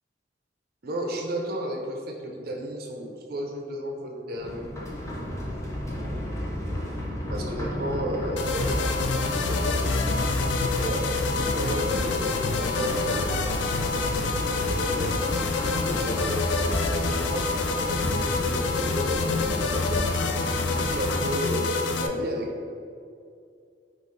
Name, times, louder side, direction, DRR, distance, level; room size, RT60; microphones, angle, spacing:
voice 1, 0.8-4.7 7.3-10.0 10.6-11.1 11.5-13.8 14.5-15.4 15.8-20.3 20.6-22.7, right 1 dB, 60° right, 1 dB, 0.6 m, -33 dB
sound 1, 4.3-21.4, equal, 15° left, 0.6 m, -32 dB
sound 2, 7.2-15.8, left 1 dB, 35° right, 0.9 m, -44 dB
sound 3, 8.4-22.1, left 4 dB, 85° left, 0.3 m, -27 dB
4.9 x 2.4 x 3.6 m, 2.4 s
head